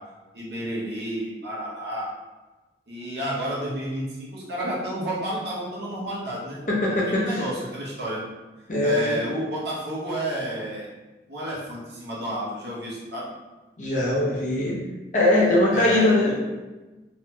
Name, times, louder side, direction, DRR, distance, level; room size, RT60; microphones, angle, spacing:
voice 1, 0.3-2.1 2.9-6.6 7.1-8.2 8.8-10.9 11.3-13.3 15.7-16.4, right 1 dB, 70° right, -6 dB, 0.8 m, -31 dB
voice 2, 6.7-7.4 8.7-9.2 13.8-14.8 15.1-16.4, left 1 dB, 45° left, -4 dB, 0.6 m, -21 dB
2.9 x 2.6 x 2.2 m, 1.1 s
head